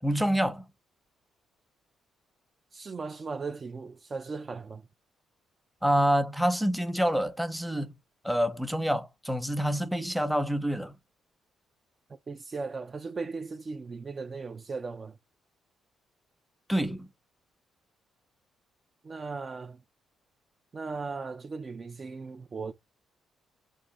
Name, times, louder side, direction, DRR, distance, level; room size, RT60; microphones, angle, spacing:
voice 1, 0.0-0.7 5.8-7.9 8.2-11.0 16.7-17.1, equal, ahead, 0.8 m, -27 dB
voice 2, 2.7-4.9 12.3-15.2 19.0-19.8 20.7-22.7, right 4 dB, 35° right, 0.4 m, -37 dB
4.6 x 2.6 x 4.0 m
cardioid pair, 90°, 0 cm